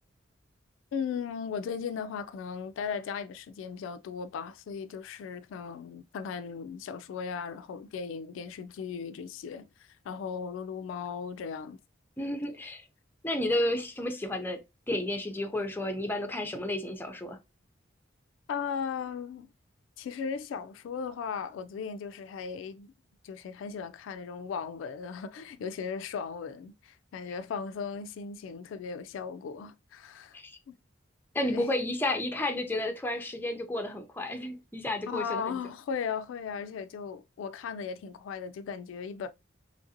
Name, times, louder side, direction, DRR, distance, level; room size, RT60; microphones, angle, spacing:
voice 1, 0.9-11.8 12.5-12.6 18.5-19.5 20.0-22.9 23.2-30.4 31.4-31.7 35.1-39.3, left 6 dB, 80° left, 0.3 m, -37 dB
voice 2, 12.2-12.9 13.2-14.6 14.9-17.4 30.3-30.5 31.3-35.6, left 1 dB, 10° left, 0.5 m, -31 dB
3.1 x 2.5 x 2.7 m
head